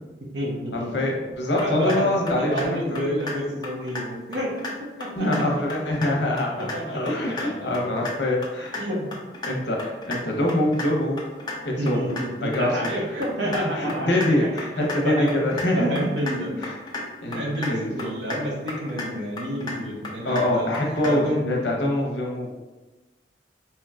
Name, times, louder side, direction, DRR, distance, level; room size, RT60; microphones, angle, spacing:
voice 1, 0.2-0.9 1.6-2.1 2.4-4.5 4.8-5.6 6.6-8.0 8.8-9.1 11.8-15.4 15.6-16.6 17.3-20.8 21.0-21.4, equal, 90° right, -1 dB, 0.9 m, -29 dB
voice 2, 0.7-2.6 2.9-3.0 5.1-8.8 9.4-11.2 11.6-12.9 13.7-16.1 16.6-16.8 17.2-18.1 20.2-22.5, left 1 dB, 75° left, -1 dB, 0.8 m, -24 dB
sound 1, 1.6-2.0 2.3-2.7 3.0-3.3 3.6-4.0 4.3-4.7 5.0-5.4 5.7-6.1 6.4-6.8 7.1-7.4 7.7-8.1 8.4-8.8 9.1-9.5 9.8-10.2 10.5-10.9 11.2-11.5 11.9-12.2 12.5-12.9 13.2-13.6 13.9-14.3 14.6-15.0 15.3-15.6 16.0-16.4 16.6-17.0 17.3-17.7 18.0-18.4 18.7-19.1 19.4-19.8 20.0-20.4 20.7-21.1, left 2 dB, 25° left, 0.6 m, -33 dB
4.5 x 2.9 x 2.4 m, 1.2 s
head